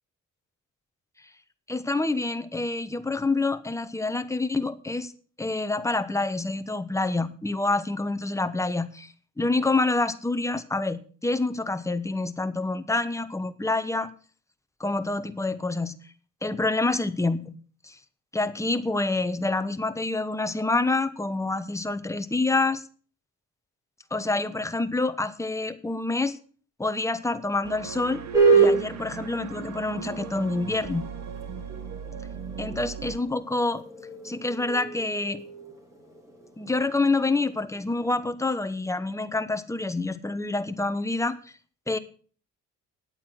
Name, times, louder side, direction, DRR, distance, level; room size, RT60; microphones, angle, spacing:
voice 1, 1.7-5.1 5.4-14.1 14.8-15.9 16.4-17.5 17.8-18.0 18.3-22.8 24.1-26.4 26.8-28.2 28.5-31.1 32.6-33.8 34.2-35.4 36.6-41.4 41.9-42.0, left 2 dB, 10° left, 10 dB, 1.1 m, -27 dB
sound 1, 27.6-33.2, right 7 dB, 65° right, 1.4 m, -38 dB
sound 2, 28.3-38.2, right 4 dB, 10° right, 4.1 m, -28 dB
9.8 x 8.6 x 6.3 m, 0.42 s
cardioid pair, 90°, 30 cm